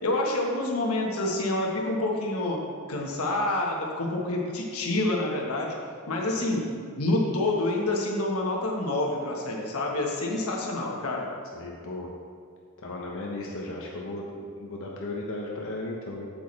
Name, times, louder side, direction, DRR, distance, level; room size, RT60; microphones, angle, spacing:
voice 1, 0.0-2.6 2.9-5.8 6.1-6.7 7.0-11.3, left 2 dB, 85° left, -1 dB, 1.3 m, -27 dB
voice 2, 11.5-12.1 12.8-16.3, left 2 dB, 65° left, -2 dB, 0.9 m, -35 dB
8.2 x 7.8 x 3.3 m, 2.1 s
head